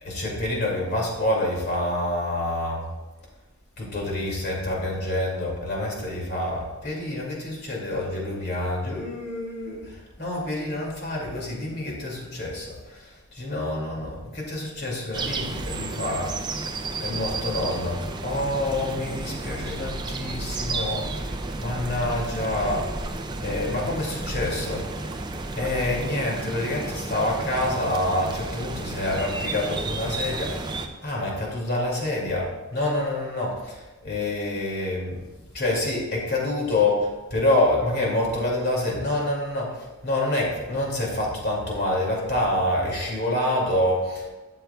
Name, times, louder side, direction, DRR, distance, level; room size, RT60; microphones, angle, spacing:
voice 1, 0.0-2.8 3.8-13.0 13.3-16.3 17.0-21.3 21.6-22.8 23.4-24.8 25.6-30.7 31.0-32.5 32.7-35.2 35.5-39.7 40.0-44.3, left 1 dB, 50° left, -3 dB, 2.4 m, -27 dB
sound 1, 15.1-30.9, right 3 dB, 20° right, 0.4 m, -32 dB
12.0 x 7.9 x 2.3 m, 1.1 s
head